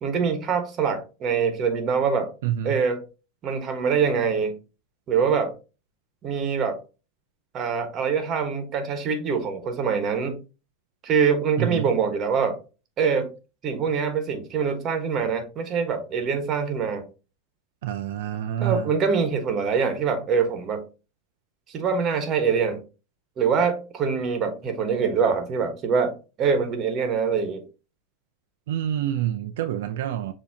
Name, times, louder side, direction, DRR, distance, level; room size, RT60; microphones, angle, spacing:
voice 1, 0.0-2.3 2.6-3.0 3.4-4.5 5.1-5.5 6.2-6.8 7.5-10.4 11.0-12.6 13.0-13.3 13.6-17.1 18.6-20.8 21.7-22.8 23.4-27.6, right 6 dB, 35° right, 1.2 m, -24 dB
voice 2, 2.4-2.8 11.6-11.9 17.8-18.9 28.7-30.3, right 11 dB, 80° right, 0.4 m, -27 dB
6.9 x 2.8 x 2.7 m
supercardioid pair, 135°, 0 cm